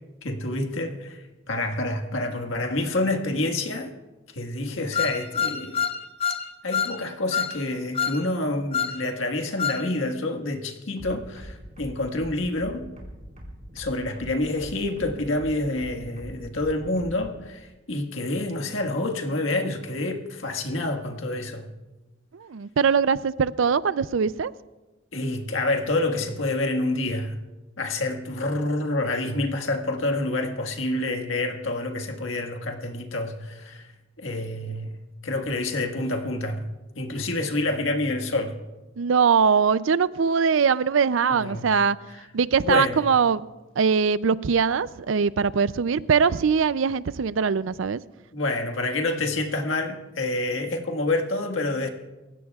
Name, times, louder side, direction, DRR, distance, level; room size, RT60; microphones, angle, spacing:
voice 1, 0.2-3.9 4.3-5.8 6.6-12.9 13.7-21.7 25.1-27.4 27.8-33.9 34.2-34.9 35.2-36.7 36.9-38.6 41.3-41.7 42.6-43.0 48.3-51.9, left 2 dB, 75° left, 4 dB, 1.6 m, -28 dB
sound 1, 4.9-6.4 6.7-7.0 7.3-7.6 7.9-8.2 8.7-9.0 9.6-9.8, left 7 dB, 30° left, 0.8 m, -26 dB
sound 2, 11.0-17.3, equal, 35° right, 4.8 m, -42 dB
voice 2, 22.3-24.5 39.0-42.0 42.3-43.4 43.8-48.0, right 6 dB, 70° right, 17 dB, 0.4 m, -22 dB
29.5 x 16.0 x 2.4 m, 1.1 s
head